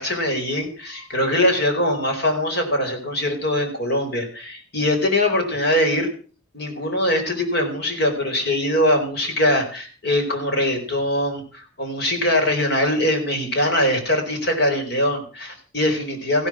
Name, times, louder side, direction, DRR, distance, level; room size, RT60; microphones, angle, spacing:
voice 1, 0.0-6.1 6.5-16.5, left 1 dB, 50° left, 4 dB, 4.3 m, -22 dB
15.5 x 11.0 x 6.2 m, 0.39 s
head